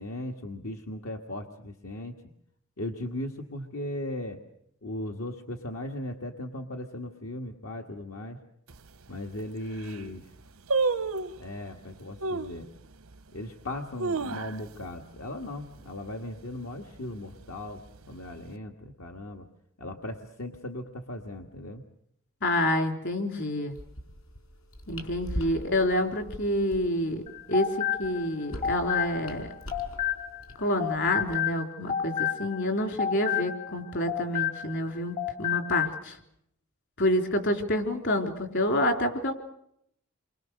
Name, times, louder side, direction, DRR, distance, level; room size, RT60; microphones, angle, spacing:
voice 1, 0.0-2.1 2.8-4.4 4.8-8.4 9.1-10.3 11.4-12.7 13.3-19.5 19.8-21.8, left 1 dB, 75° left, 3 dB, 1.8 m, -37 dB
sound 1, 8.7-8.8 9.4-9.5 9.7-10.1 10.7-11.4 12.2-12.6 13.1-13.2 13.8-14.9 15.2-15.3 15.6-16.0 16.4-16.7 17.4-18.1 18.4-18.5, right 4 dB, 85° right, 0.9 m, -30 dB
voice 2, 22.4-23.7 24.9-27.2 27.5-29.5 30.6-36.2 37.0-39.3, left 1 dB, 55° left, 5 dB, 3.7 m, -28 dB
sound 2, 23.7-31.4, equal, 90° left, 4.9 m, -42 dB
sound 3, 27.3-30.5 30.8-34.9 35.2-36.0, left 10 dB, 35° left, 1.1 m, -31 dB
29.5 x 24.0 x 6.5 m, 0.75 s
head